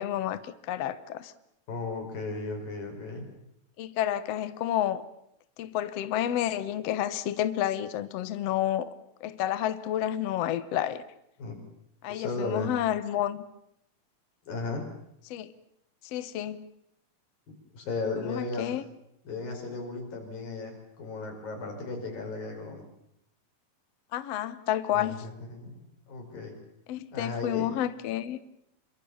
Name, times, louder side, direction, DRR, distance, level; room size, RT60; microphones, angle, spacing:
voice 1, 0.0-1.3 3.8-5.0 5.6-8.9 9.2-11.0 12.0-13.4 15.3-15.5 16.1-16.6 18.2-18.8 24.1-25.2 26.9-28.4, left 11 dB, 65° left, 1.7 m, -30 dB
voice 2, 1.7-3.3 11.4-11.6 12.1-12.7 14.4-14.8 17.7-18.7 19.3-22.9 24.9-26.6 27.1-27.8, left 3 dB, 80° left, 7.2 m, -35 dB
27.0 x 24.0 x 7.2 m
omnidirectional pair, 4.0 m